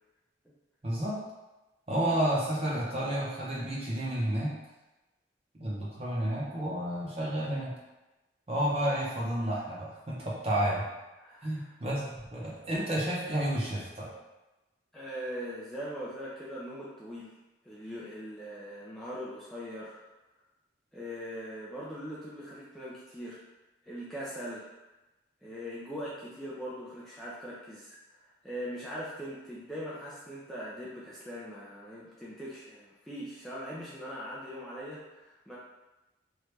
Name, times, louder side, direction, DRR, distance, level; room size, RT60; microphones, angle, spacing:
voice 1, 0.8-1.2 1.9-4.5 5.6-7.7 8.5-10.8 11.4-14.1, right 1 dB, 30° right, -5 dB, 0.7 m, -31 dB
voice 2, 11.2-11.7 14.9-17.4 17.6-20.0 20.9-23.4 23.8-24.7 25.4-28.0 28.4-35.6, equal, ahead, -8 dB, 0.4 m, -41 dB
3.1 x 2.5 x 3.2 m, 1.1 s
head